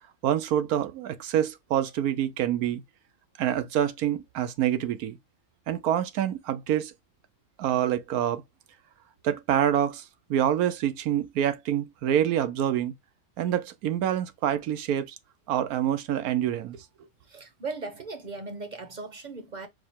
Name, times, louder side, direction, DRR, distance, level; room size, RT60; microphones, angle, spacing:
voice 1, 0.2-2.8 3.4-5.2 5.7-6.9 7.6-8.4 9.2-10.0 10.3-12.9 13.4-15.1 15.5-16.8, right 10 dB, 90° right, 1.2 m, -26 dB
voice 2, 17.2-19.7, right 3 dB, 40° right, 0.8 m, -38 dB
4.8 x 2.1 x 4.3 m
omnidirectional pair, 1.5 m